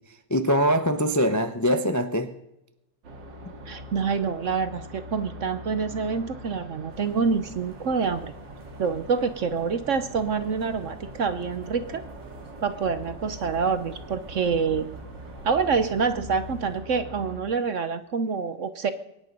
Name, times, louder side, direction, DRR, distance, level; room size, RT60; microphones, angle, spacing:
voice 1, 0.3-2.3, equal, 20° left, 8 dB, 0.4 m, -23 dB
sound 1, 3.0-17.4, equal, 90° right, 2.6 m, -43 dB
voice 2, 3.7-8.3 8.8-12.0 12.6-14.8 15.4-18.9, right 5 dB, 55° right, 12 dB, 1.0 m, -26 dB
sound 2, 6.9-16.8, equal, 10° right, 1.7 m, -48 dB
23.0 x 10.5 x 5.4 m, 0.92 s
omnidirectional pair, 1.9 m